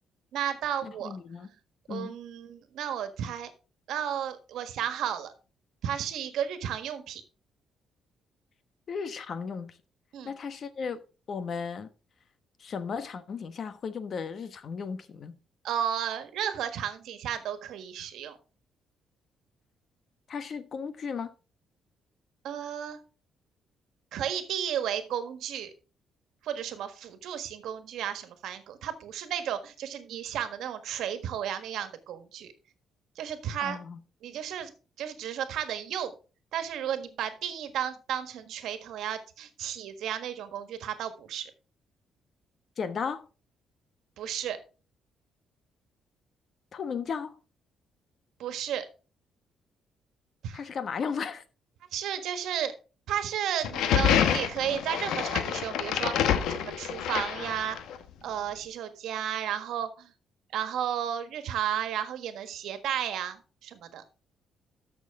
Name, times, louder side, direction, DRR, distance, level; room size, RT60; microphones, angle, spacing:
voice 1, 0.3-1.1 1.9-3.5 3.9-5.3 5.8-7.2 10.1-10.3 15.6-18.4 22.4-23.0 24.1-25.7 26.4-32.5 33.2-33.8 34.2-34.7 35.0-36.1 36.5-41.5 44.2-44.6 48.4-48.9 50.4-50.6 51.9-52.7 53.1-57.8 58.2-60.1 60.5-64.0, right 9 dB, 80° right, 1.5 m, -33 dB
voice 2, 0.8-1.5 1.9-2.1 8.9-9.8 10.2-11.0 11.3-11.9 12.6-15.4 20.3-21.3 33.6-34.0 42.8-43.2 46.7-47.4 50.5-51.4, left 6 dB, 55° left, 1.1 m, -35 dB
sound 1, 53.6-58.0, left 9 dB, 85° left, 1.0 m, -27 dB
13.0 x 6.4 x 3.6 m
cardioid pair, 90°, 0 cm